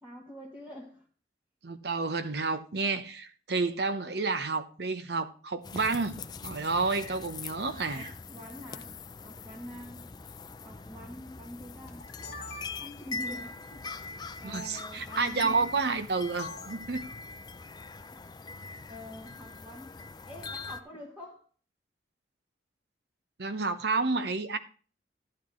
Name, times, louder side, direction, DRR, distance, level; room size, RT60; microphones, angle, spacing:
voice 1, 0.0-1.1 7.9-9.0 9.2-10.1 10.6-12.1 12.8-16.0 18.1-18.4 18.9-19.9 20.3-21.5, left 1 dB, 10° right, 2.2 m, -46 dB
voice 2, 1.6-6.2 6.4-8.1 14.4-17.1 23.4-24.6, right 4 dB, 65° right, 0.8 m, -30 dB
sound 1, 5.6-20.8, left 4 dB, 25° left, 0.4 m, -42 dB
sound 2, 11.9-13.1 14.5-14.7 16.4-16.8, left 3 dB, 70° left, 1.4 m, -43 dB
12.0 x 9.9 x 3.1 m
head